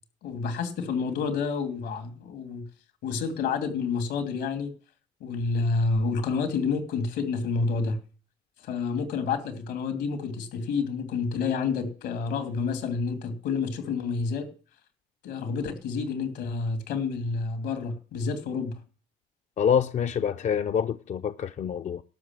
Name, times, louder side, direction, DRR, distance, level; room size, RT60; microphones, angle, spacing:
voice 1, 0.2-2.6 3.0-4.7 5.2-8.0 8.6-14.5 15.2-18.7, left 4 dB, 80° left, 2.6 m, -29 dB
voice 2, 19.6-22.0, left 8 dB, 45° left, 0.5 m, -26 dB
12.0 x 6.1 x 9.0 m
cardioid pair, 110°, 17 cm